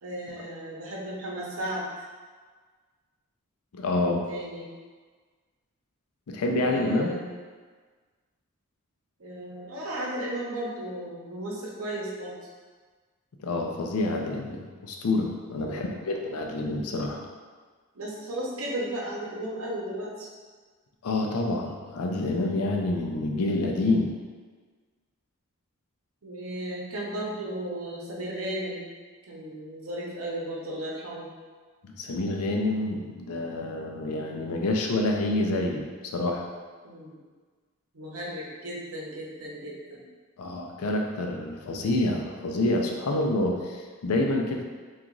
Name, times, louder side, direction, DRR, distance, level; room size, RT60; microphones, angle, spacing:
voice 1, 0.0-1.8 4.0-4.7 6.6-7.2 9.2-12.3 15.6-16.0 17.9-20.3 26.2-28.8 29.3-31.3 36.8-37.2 37.9-40.0, right 1 dB, 65° right, -4 dB, 0.8 m, -35 dB
voice 2, 3.7-4.3 6.3-7.1 13.4-17.2 21.0-24.1 31.8-36.5 40.4-44.6, left 2 dB, 75° left, 1 dB, 0.5 m, -27 dB
2.9 x 2.4 x 3.7 m, 1.5 s
head